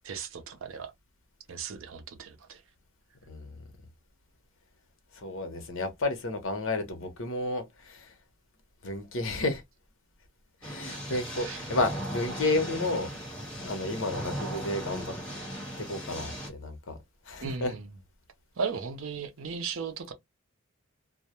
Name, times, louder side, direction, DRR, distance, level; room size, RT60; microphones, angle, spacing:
voice 1, 0.0-0.9 1.5-2.6 10.9-11.6 17.4-17.8 18.6-20.1, right 5 dB, 65° right, 0.5 m, -36 dB
voice 2, 3.3-3.6 5.1-8.2 8.8-9.6 10.6-13.1 13.6-15.1 15.8-17.0 17.2-17.8, left 2 dB, 65° left, 0.8 m, -32 dB
sound 1, 10.6-16.5, equal, 5° left, 1.2 m, -37 dB
2.2 x 2.1 x 2.8 m
head